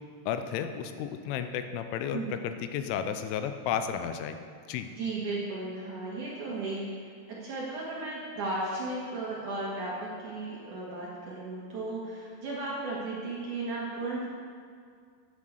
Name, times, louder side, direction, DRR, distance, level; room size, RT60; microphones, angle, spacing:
voice 1, 0.3-4.4 4.7-4.9, left 8 dB, 90° left, 8 dB, 3.1 m, -33 dB
voice 2, 5.0-6.9 7.3-14.3, right 2 dB, 60° right, -6 dB, 2.2 m, -35 dB
9.8 x 7.4 x 7.8 m, 2.1 s
omnidirectional pair, 5.5 m